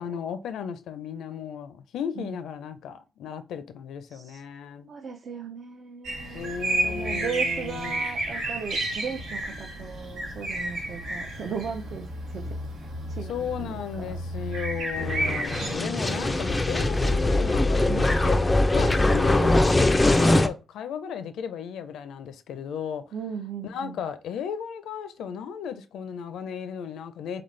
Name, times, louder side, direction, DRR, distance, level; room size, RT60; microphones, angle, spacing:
voice 1, 0.0-4.9 6.3-8.0 13.3-18.4 18.7-19.7 20.0-23.0 23.6-27.4, left 8 dB, 80° left, 0.5 m, -35 dB
voice 2, 4.1-4.4 4.9-14.5 15.6-16.6 17.9-18.1 23.1-24.0, right 6 dB, 45° right, 0.5 m, -37 dB
sound 1, 6.0-15.7, right 1 dB, 85° right, 1.6 m, -31 dB
sound 2, 15.0-20.5, left 2 dB, 15° left, 0.3 m, -22 dB
4.1 x 4.0 x 3.2 m
cardioid pair, 135°, 0 cm